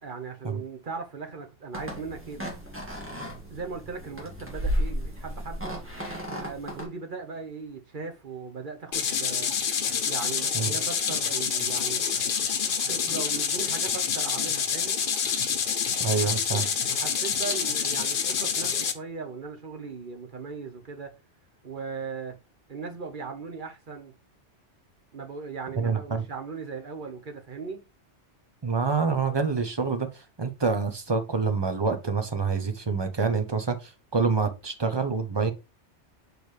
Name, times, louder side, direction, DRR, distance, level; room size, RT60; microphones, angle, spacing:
voice 1, 0.0-2.6 3.5-5.8 6.2-9.5 10.0-12.0 12.9-15.1 16.2-21.1 21.6-22.3 22.7-24.1 25.1-27.8, right 5 dB, 45° right, 1.0 m, -38 dB
sound 1, 1.7-6.8, equal, 10° right, 1.9 m, -33 dB
sound 2, 8.9-18.9, left 6 dB, 50° left, 0.8 m, -27 dB
voice 2, 16.0-16.7 25.8-26.2 28.6-35.5, right 4 dB, 25° right, 0.7 m, -27 dB
6.6 x 4.6 x 3.2 m
omnidirectional pair, 1.2 m